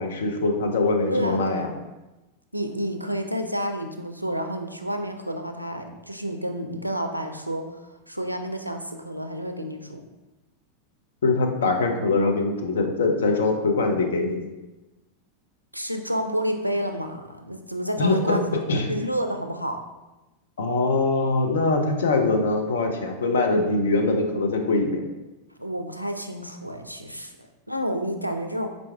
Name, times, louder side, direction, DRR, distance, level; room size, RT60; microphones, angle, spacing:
voice 1, 0.0-1.7 11.2-14.4 18.0-18.9 20.6-25.0, left 3 dB, 65° left, 4 dB, 0.5 m, -23 dB
voice 2, 1.1-1.7 2.5-10.0 15.7-18.5 18.9-19.8 25.6-28.7, equal, 90° right, 5 dB, 0.3 m, -30 dB
4.5 x 2.5 x 3.3 m, 1.1 s
figure-of-eight pair, 90°, 0 cm